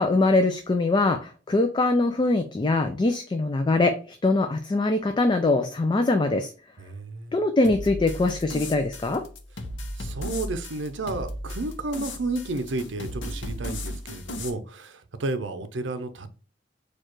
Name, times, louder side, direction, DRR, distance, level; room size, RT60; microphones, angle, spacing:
voice 1, 0.0-6.5 7.3-9.2, left 2 dB, 25° left, 0.4 m, -23 dB
voice 2, 6.8-7.4 10.0-16.3, right 2 dB, 70° right, 0.6 m, -32 dB
sound 1, 7.6-14.5, left 1 dB, 75° left, 0.7 m, -36 dB
4.5 x 2.4 x 4.5 m
head